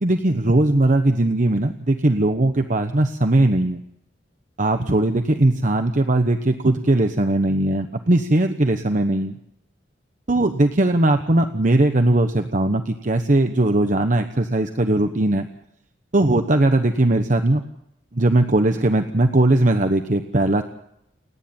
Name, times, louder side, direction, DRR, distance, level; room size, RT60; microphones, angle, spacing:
voice 1, 0.0-3.8 4.6-9.4 10.3-15.5 16.1-17.6 18.1-20.6, right 1 dB, 45° right, 7 dB, 1.1 m, -19 dB
29.0 x 10.0 x 8.8 m, 0.80 s
head